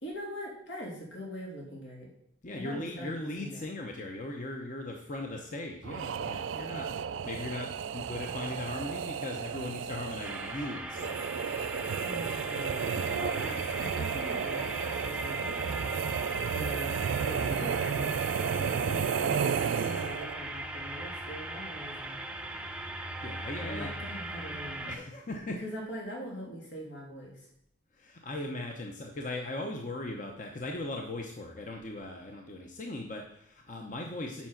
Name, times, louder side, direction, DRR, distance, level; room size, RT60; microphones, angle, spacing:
voice 1, 0.0-2.1 2.5-3.7 12.0-19.5 19.8-22.2 23.6-25.0 25.4-27.5, equal, 80° left, -2 dB, 2.9 m, -42 dB
voice 2, 2.4-6.9 7.2-11.2 23.2-24.0 24.9-25.6 28.0-34.5, left 2 dB, 40° left, 2 dB, 0.8 m, -38 dB
sound 1, 5.8-20.4, right 7 dB, 75° right, 0.4 m, -33 dB
sound 2, 10.2-25.0, right 1 dB, 5° right, 0.7 m, -39 dB
7.3 x 5.6 x 5.8 m, 0.73 s
head